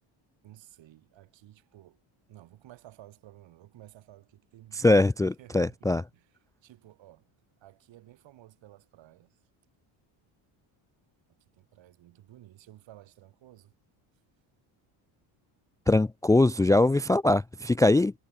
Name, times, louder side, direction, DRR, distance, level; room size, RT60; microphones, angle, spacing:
voice 1, 0.4-2.0 2.3-5.0 5.4-7.3 7.6-9.4 11.3-13.7, right 14 dB, 65° right, 7.6 m, -54 dB
voice 2, 4.8-6.0 15.9-18.1, left 2 dB, 5° left, 0.5 m, -22 dB
cardioid pair, 145°, 48 cm